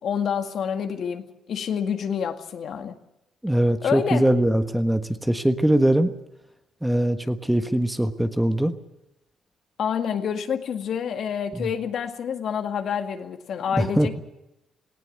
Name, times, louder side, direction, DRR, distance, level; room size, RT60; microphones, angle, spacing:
voice 1, 0.0-2.9 3.8-4.3 9.8-14.2, left 7 dB, 65° left, 6 dB, 2.0 m, -28 dB
voice 2, 3.4-6.1 6.8-8.7 11.5-11.7 13.8-14.1, right 1 dB, 5° right, 8 dB, 1.4 m, -21 dB
18.5 x 17.0 x 9.4 m, 0.89 s
cardioid pair, 90°, 0 cm